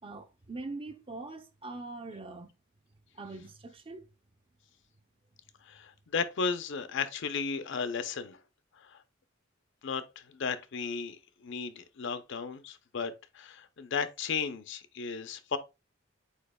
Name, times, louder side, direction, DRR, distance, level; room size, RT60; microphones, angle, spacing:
voice 1, 0.0-2.5 3.1-4.1, right 3 dB, 30° right, 0.5 m, -42 dB
voice 2, 5.7-8.4 8.9-9.0 9.8-11.2 11.4-15.6, left 5 dB, 65° left, 0.6 m, -34 dB
8.1 x 2.9 x 2.2 m
head